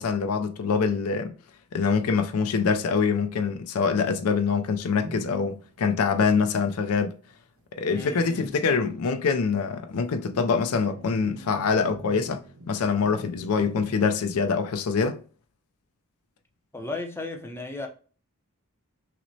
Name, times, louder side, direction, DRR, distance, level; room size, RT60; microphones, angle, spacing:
voice 1, 0.0-1.4 1.7-7.1 7.8-12.4 12.7-15.2, left 5 dB, 75° left, 0.4 m, -24 dB
sound 1, 4.7-5.8 6.9-7.2 7.6-14.1, right 2 dB, 70° right, 0.7 m, -44 dB
voice 2, 7.9-8.4 16.7-17.9, left 2 dB, 10° left, 0.6 m, -35 dB
5.7 x 2.1 x 2.7 m
head